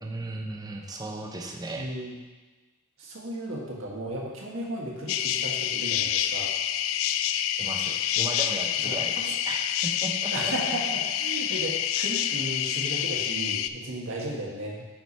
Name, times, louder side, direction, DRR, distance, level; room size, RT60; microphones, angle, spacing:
voice 1, 0.0-1.9 7.6-10.5 12.1-12.2, right 2 dB, 20° right, 0 dB, 0.7 m, -36 dB
voice 2, 1.7-2.1 3.0-6.5 8.8-9.0 10.3-14.8, right 1 dB, 85° right, -3 dB, 1.6 m, -35 dB
sound 1, 5.1-13.7, left 10 dB, 90° left, 0.3 m, -27 dB
7.8 x 4.9 x 4.3 m, 1.2 s
head